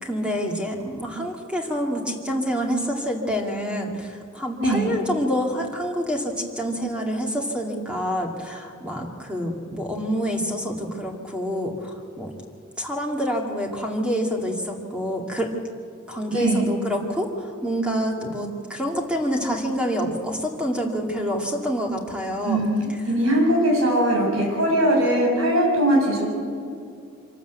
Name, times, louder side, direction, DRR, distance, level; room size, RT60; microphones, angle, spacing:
voice 1, 0.0-12.3 12.8-15.5 16.1-23.0, equal, 5° right, 0 dB, 2.2 m, -27 dB
voice 2, 4.6-4.9 16.3-16.7 22.4-26.3, right 1 dB, 85° right, -1 dB, 7.5 m, -20 dB
25.5 x 12.5 x 8.2 m, 2.4 s
head